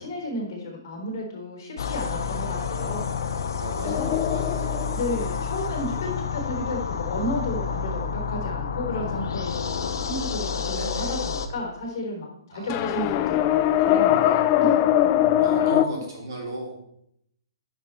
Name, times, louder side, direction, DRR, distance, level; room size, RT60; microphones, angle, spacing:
voice 1, 0.0-3.1 3.8-4.1 4.9-14.9 15.5-16.0, left 1 dB, 40° left, 0 dB, 3.5 m, -32 dB
sound 1, 1.8-11.5, left 6 dB, 60° left, 0.8 m, -29 dB
voice 2, 2.5-3.1 3.6-5.0 9.0-9.7 10.7-11.2 12.5-13.2 15.4-16.9, right 1 dB, 60° right, -2 dB, 3.3 m, -38 dB
sound 2, 3.8-6.2 12.7-15.9, left 12 dB, 25° left, 0.4 m, -22 dB
9.7 x 5.8 x 4.5 m, 0.74 s
hypercardioid pair, 170°, 2 cm